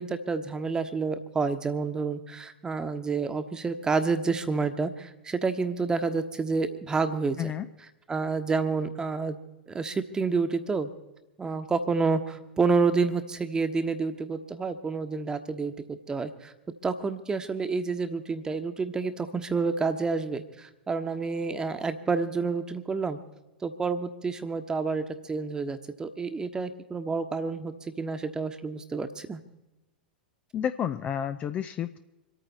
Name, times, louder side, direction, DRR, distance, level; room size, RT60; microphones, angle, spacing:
voice 1, 0.0-7.5 8.1-9.4 9.7-10.9 11.4-16.5 16.8-23.2 23.6-29.4, right 4 dB, 15° right, 8 dB, 1.2 m, -29 dB
voice 2, 30.5-32.0, left 9 dB, 25° left, 10 dB, 0.5 m, -30 dB
27.0 x 9.1 x 4.1 m, 1.0 s
figure-of-eight pair, 95°, 5 cm